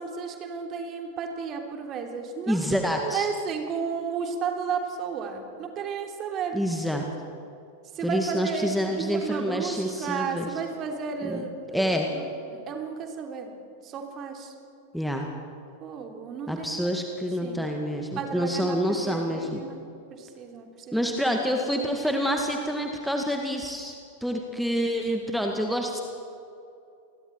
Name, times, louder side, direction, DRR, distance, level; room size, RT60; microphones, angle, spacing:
voice 1, 0.0-6.6 7.9-13.6 13.8-14.5 15.8-16.7 17.4-17.7 18.1-19.8 20.1-21.1, right 6 dB, 30° right, 3 dB, 3.0 m, -33 dB
voice 2, 2.5-3.3 6.5-7.1 8.0-10.5 11.2-11.4 11.7-12.1 14.9-15.3 16.5-19.6 20.9-26.0, equal, ahead, 2 dB, 1.8 m, -27 dB
28.5 x 21.0 x 4.5 m, 2.6 s
figure-of-eight pair, 90°, 0 cm